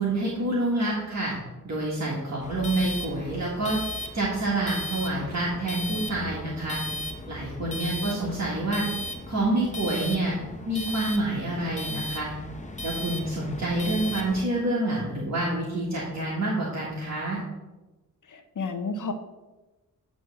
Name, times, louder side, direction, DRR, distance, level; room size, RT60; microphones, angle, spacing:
voice 1, 0.0-1.4 1.6-3.8 4.1-6.8 7.3-8.8 9.3-10.4 10.7-12.3 12.8-17.4, right 2 dB, 50° right, -5 dB, 1.6 m, -27 dB
sound 1, 2.4-14.4, left 1 dB, 20° left, 0.8 m, -36 dB
voice 2, 7.6-8.3 18.3-19.1, left 4 dB, 65° left, 8 dB, 0.8 m, -33 dB
9.3 x 3.1 x 6.6 m, 1.1 s
wide cardioid pair, 95°, 34 cm